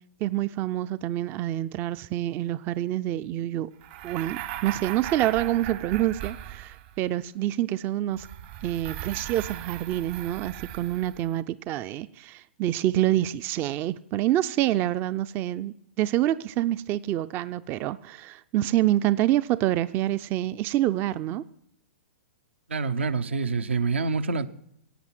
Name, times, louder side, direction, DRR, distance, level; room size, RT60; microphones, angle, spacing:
voice 1, 0.2-3.7 4.0-8.3 8.6-21.4, right 14 dB, 35° right, 0.4 m, -27 dB
sound 1, 3.8-7.1 8.1-11.3, right 12 dB, 50° right, 1.2 m, -38 dB
voice 2, 22.7-24.5, right 4 dB, 80° right, 0.9 m, -26 dB
17.0 x 8.5 x 7.5 m
hypercardioid pair, 115°, 6 cm